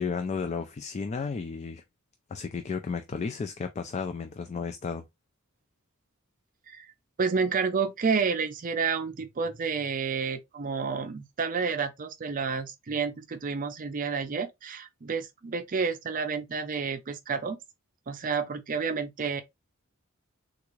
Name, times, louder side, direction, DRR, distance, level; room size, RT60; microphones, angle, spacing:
voice 1, 0.0-1.8 2.3-5.0, left 5 dB, 30° left, 0.3 m, -33 dB
voice 2, 7.2-17.6 18.1-19.4, right 5 dB, 40° right, 0.5 m, -30 dB
3.5 x 2.4 x 3.0 m
head